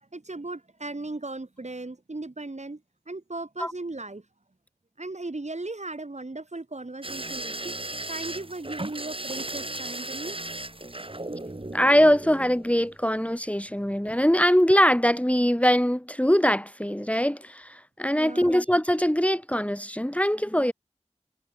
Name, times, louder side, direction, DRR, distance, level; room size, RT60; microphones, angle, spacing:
voice 1, 0.1-4.3 5.0-7.8 8.1-10.4 10.7-10.9 13.9-14.0 18.1-18.6, right 2 dB, 75° right, 4.4 m, -37 dB
sound 1, 7.0-13.0 14.3-14.6 14.9-15.0, right 2 dB, 50° right, 6.2 m, -36 dB
voice 2, 11.7-20.7, equal, 10° left, 1.8 m, -22 dB
wide cardioid pair, 40°, 12 cm